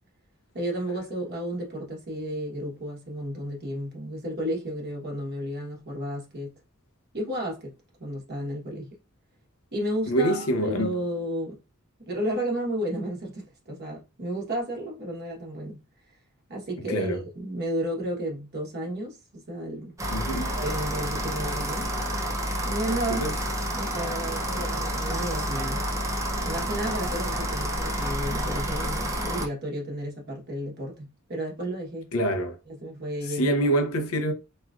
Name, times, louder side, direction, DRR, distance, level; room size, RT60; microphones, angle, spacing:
voice 1, 0.5-6.5 7.1-7.7 8.0-8.9 9.7-11.6 12.0-15.8 16.5-20.0 20.5-21.9 22.6-23.3 23.7-25.9 26.4-32.1 32.6-33.7, right 1 dB, 50° right, 1.1 m, -32 dB
voice 2, 10.1-10.9 16.9-17.2 20.1-20.5 23.2-23.3 32.1-32.5 33.4-34.3, right 1 dB, 90° left, 0.6 m, -25 dB
sound 1, 20.0-29.5, equal, 15° right, 0.4 m, -29 dB
3.0 x 2.4 x 2.3 m
head